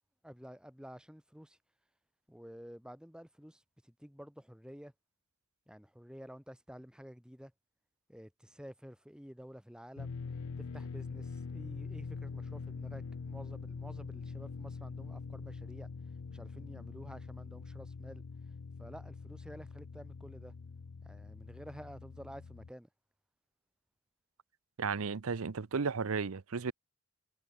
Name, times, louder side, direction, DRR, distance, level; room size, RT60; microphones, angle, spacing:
voice 1, 0.2-1.6 2.3-4.9 5.7-7.5 8.1-10.1 10.6-15.9 16.3-18.2 18.8-20.5 21.0-22.9, equal, 5° right, 2.8 m, -51 dB
sound 1, 10.0-22.7, left 4 dB, 85° left, 0.6 m, -44 dB
voice 2, 24.8-26.7, right 5 dB, 70° right, 0.7 m, -34 dB
head